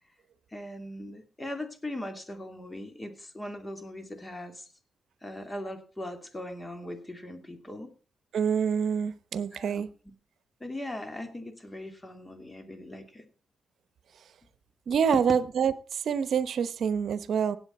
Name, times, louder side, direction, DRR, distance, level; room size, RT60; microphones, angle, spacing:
voice 1, 0.5-4.7 5.2-7.9 9.5-9.8 10.6-13.2 15.1-15.2, left 1 dB, 20° left, 7 dB, 2.5 m, -39 dB
voice 2, 8.3-9.9 14.9-17.6, right 7 dB, 70° right, 15 dB, 0.9 m, -26 dB
17.0 x 8.1 x 4.3 m, 0.38 s
cardioid pair, 70°, 0 cm